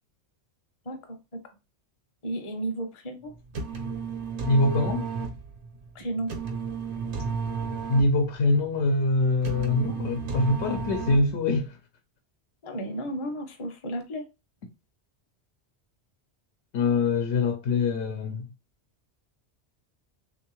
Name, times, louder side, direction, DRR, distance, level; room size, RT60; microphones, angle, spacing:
voice 1, 0.8-1.6 2.2-3.3 5.9-6.3 12.6-14.2, right 1 dB, 35° left, 0.6 m, -33 dB
sound 1, 3.3-11.6, right 5 dB, 80° right, 1.1 m, -33 dB
voice 2, 4.5-5.0 7.9-11.8 16.7-18.5, left 2 dB, 80° left, 0.9 m, -24 dB
3.4 x 2.7 x 2.9 m
omnidirectional pair, 1.1 m